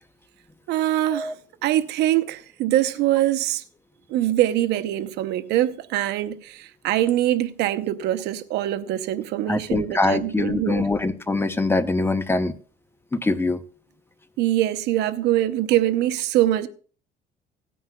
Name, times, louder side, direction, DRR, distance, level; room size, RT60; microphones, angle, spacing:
voice 1, 0.7-1.3 1.6-3.6 4.1-10.8 14.4-16.7, right 13 dB, 85° right, 0.7 m, -23 dB
voice 2, 9.5-12.5 13.1-13.6, left 2 dB, 15° left, 0.7 m, -23 dB
18.0 x 9.4 x 2.3 m
cardioid pair, 110°, 17 cm